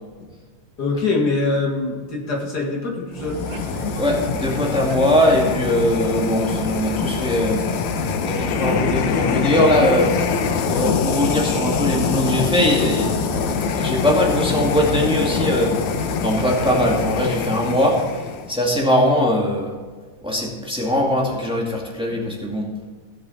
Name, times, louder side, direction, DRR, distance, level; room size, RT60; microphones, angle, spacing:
voice 1, 0.8-3.4, left 3 dB, 35° left, -1 dB, 1.9 m, -23 dB
sound 1, 3.2-18.6, left 6 dB, 70° left, 2.0 m, -24 dB
sound 2, 3.2-17.3, right 4 dB, 80° right, 2.6 m, -33 dB
voice 2, 4.0-7.6 8.2-10.1 10.6-15.8 16.2-18.1 18.5-19.8 20.2-22.7, left 1 dB, ahead, -2 dB, 1.4 m, -21 dB
17.5 x 6.8 x 4.1 m, 1.5 s
omnidirectional pair, 3.7 m